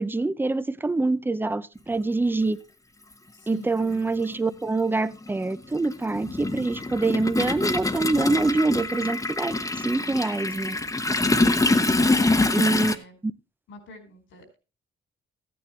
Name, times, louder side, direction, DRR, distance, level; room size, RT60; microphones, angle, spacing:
voice 1, 0.0-2.6 3.5-10.8 11.1-11.2 12.5-12.9, right 3 dB, 10° right, 0.6 m, -25 dB
Toilet flush, 2.5-2.6 3.8-4.0 4.3-12.9, left 2 dB, 15° left, 1.0 m, -25 dB
voice 2, 3.3-3.8 11.9-13.2 13.7-14.5, left 1 dB, 85° left, 4.5 m, -45 dB
14.0 x 9.3 x 3.2 m
cardioid pair, 90°, 20 cm